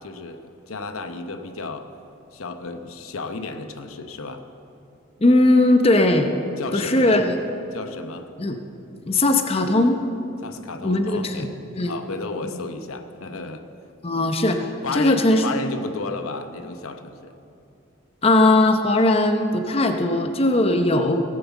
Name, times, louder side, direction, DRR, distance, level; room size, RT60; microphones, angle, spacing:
voice 1, 0.0-1.9 2.3-4.4 6.6-7.2 7.7-8.3 10.4-11.5 11.8-13.7 14.2-14.3 14.8-17.3, left 3 dB, 90° left, 7 dB, 0.9 m, -33 dB
voice 2, 5.2-6.3 6.7-7.3 8.4-8.6 9.1-10.0 10.8-11.5 11.8-12.0 12.4-12.6 14.0-14.6 14.9-15.4 18.2-21.2, left 2 dB, 30° left, 6 dB, 0.7 m, -19 dB
17.5 x 7.7 x 7.1 m, 2.7 s
head